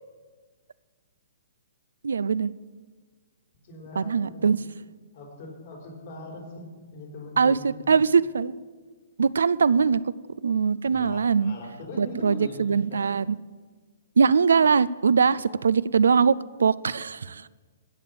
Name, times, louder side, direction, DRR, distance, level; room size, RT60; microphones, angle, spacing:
voice 1, 2.0-2.5 4.0-4.6 7.4-8.5 9.2-10.0 10.4-11.5 12.0-13.4 14.2-17.5, right 5 dB, 75° right, 18 dB, 0.4 m, -22 dB
voice 2, 3.6-4.5 5.1-8.0 10.8-13.1 15.4-15.6, left 2 dB, 55° left, -1 dB, 4.8 m, -41 dB
16.0 x 6.7 x 7.3 m, 1.4 s
hypercardioid pair, 125°, 0 cm